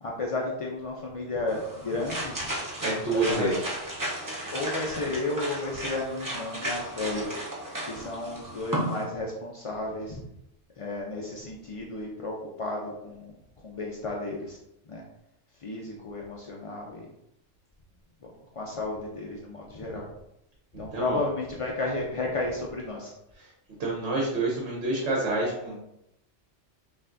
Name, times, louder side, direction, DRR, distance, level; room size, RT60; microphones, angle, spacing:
voice 1, 0.0-2.4 3.1-3.5 4.5-7.3 7.8-10.2 10.8-13.3 13.6-14.6 14.9-15.0 15.6-17.1 18.2-20.1 20.8-23.1, left 2 dB, 60° left, -2 dB, 0.3 m, -33 dB
sound 1, 1.5-9.0, right 1 dB, 20° right, 0.6 m, -34 dB
voice 2, 2.8-3.5 20.7-21.2 23.4-23.5 23.8-25.9, right 2 dB, 65° right, -3 dB, 1.1 m, -28 dB
5.4 x 2.5 x 2.5 m, 0.83 s
omnidirectional pair, 1.3 m